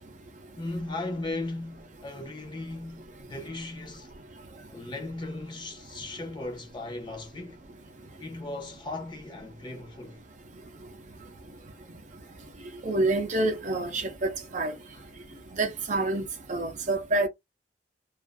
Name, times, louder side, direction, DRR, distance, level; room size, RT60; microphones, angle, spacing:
voice 1, 0.6-4.1 4.7-7.6 8.2-10.2 14.9-15.0, left 2 dB, 25° left, 0.7 m, -37 dB
voice 2, 12.8-14.7 15.5-17.3, right 2 dB, 45° right, 0.5 m, -27 dB
2.5 x 2.4 x 2.5 m
head